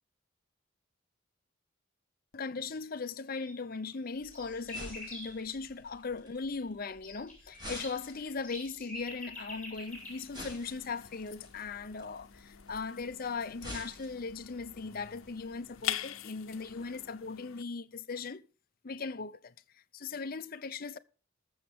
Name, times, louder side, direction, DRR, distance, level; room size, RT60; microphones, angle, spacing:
voice 1, 2.3-18.5 18.8-21.0, left 4 dB, 45° left, 0.6 m, -39 dB
sound 1, 3.4-3.5 3.9-5.4 6.6-10.2, left 1 dB, 5° left, 5.8 m, -46 dB
sound 2, 4.1-15.9, left 1 dB, 20° right, 6.2 m, -51 dB
sound 3, 9.9-17.6, left 11 dB, 80° left, 0.8 m, -44 dB
20.5 x 7.1 x 3.6 m
head